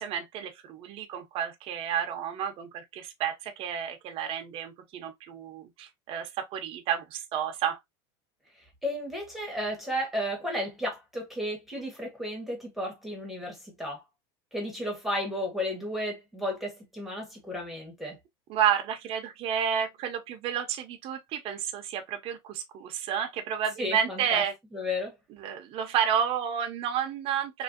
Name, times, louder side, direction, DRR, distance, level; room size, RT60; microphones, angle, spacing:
voice 1, 0.0-7.8 18.5-24.5 25.4-27.6, right 8 dB, 40° right, 0.6 m, -31 dB
voice 2, 8.8-14.0 14.5-18.2 23.8-24.4 24.7-25.1, left 1 dB, ahead, 1.0 m, -33 dB
3.0 x 2.6 x 2.5 m
supercardioid pair, 150°, 15 cm